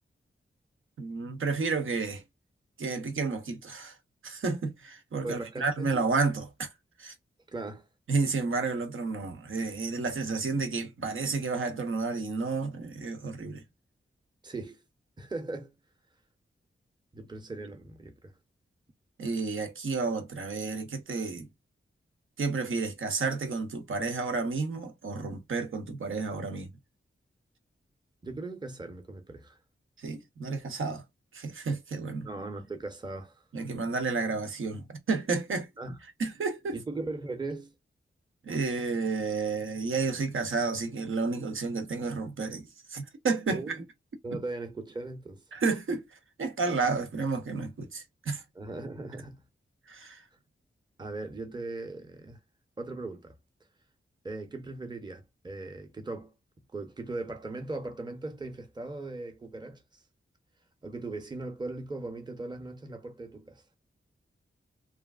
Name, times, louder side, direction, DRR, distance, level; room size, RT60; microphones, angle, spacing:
voice 1, 1.0-2.2 2.8-4.0 4.2-6.7 7.0-7.1 8.1-13.6 19.2-21.5 22.4-26.7 30.0-31.0 31.3-32.3 33.5-35.7 36.2-36.7 38.4-43.8 45.5-46.1 46.4-48.4 49.9-50.2, right 4 dB, 70° right, 0.8 m, -31 dB
voice 2, 5.2-5.9 7.5-7.8 14.4-14.8 15.2-15.7 17.1-18.3 28.2-29.6 32.2-33.4 35.8-36.0 36.7-37.7 43.5-43.8 44.2-45.4 48.5-49.5 51.0-52.4 52.8-53.3 54.2-56.3 56.7-59.8 60.8-63.6, right 2 dB, 20° right, 0.7 m, -38 dB
3.1 x 2.5 x 2.4 m
wide cardioid pair, 80°, 21 cm